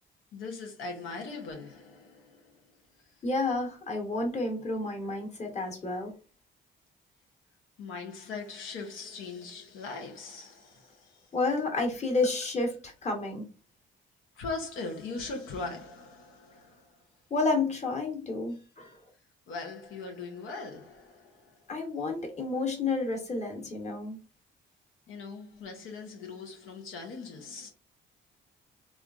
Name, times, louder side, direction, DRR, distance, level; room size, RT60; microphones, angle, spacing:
voice 1, 0.3-3.2 7.8-11.3 14.3-17.0 18.5-18.9 19.5-21.7 25.1-27.7, left 4 dB, 85° left, 0.7 m, -41 dB
voice 2, 3.2-6.1 11.3-12.7 13.0-13.5 17.3-19.0 21.7-24.2, left 3 dB, 35° left, 1.2 m, -30 dB
3.1 x 2.4 x 2.5 m
cardioid pair, 90°, 20 cm